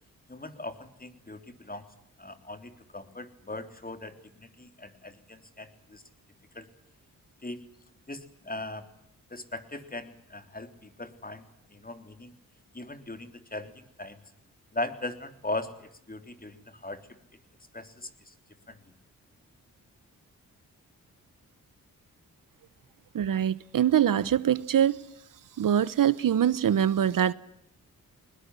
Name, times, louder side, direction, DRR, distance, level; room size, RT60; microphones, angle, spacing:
voice 1, 0.3-1.8 2.2-6.0 6.6-6.7 7.4-7.6 8.1-8.9 9.3-11.4 11.7-12.3 12.7-14.2 14.7-17.2 17.7-18.3 18.7-18.8, left 2 dB, 25° left, 3.6 m, -39 dB
voice 2, 23.1-25.0 25.6-27.3, right 9 dB, 65° right, 1.0 m, -24 dB
22.0 x 20.0 x 9.9 m
supercardioid pair, 50°, 35 cm